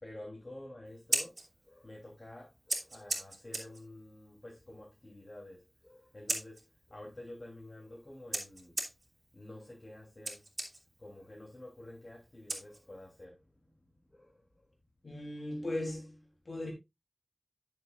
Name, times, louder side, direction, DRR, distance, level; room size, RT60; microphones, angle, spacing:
voice 1, 0.0-8.8 9.3-10.6 11.0-14.5 16.5-16.7, left 1 dB, 50° left, 3.3 m, -50 dB
Scissors, 0.9-13.2, right 2 dB, 75° right, 2.5 m, -42 dB
voice 2, 15.0-16.7, left 1 dB, 80° left, 3.4 m, -38 dB
10.5 x 7.1 x 2.5 m
wide cardioid pair, 60°, 0 cm